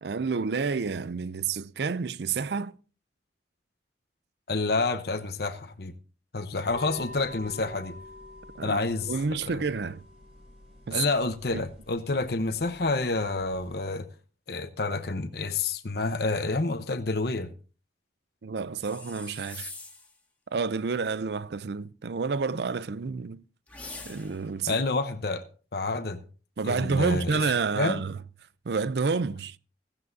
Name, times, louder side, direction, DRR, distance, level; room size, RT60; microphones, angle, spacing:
voice 1, 0.0-2.8 8.6-10.0 10.9-11.0 11.5-11.6 18.4-19.7 20.5-23.4 24.0-24.8 26.6-28.2 28.7-29.6, right 4 dB, 65° right, 0.5 m, -29 dB
voice 2, 4.5-5.9 6.3-8.0 8.6-9.1 9.4-9.7 10.9-14.1 14.5-17.5 24.7-25.4 25.7-26.2 26.6-27.4 27.7-28.0, left 3 dB, 60° left, 0.9 m, -28 dB
sound 1, 6.7-13.7, left 2 dB, 35° right, 4.6 m, -47 dB
sound 2, 18.8-20.2 23.7-24.5, left 3 dB, 10° left, 1.9 m, -43 dB
16.0 x 14.5 x 2.7 m
head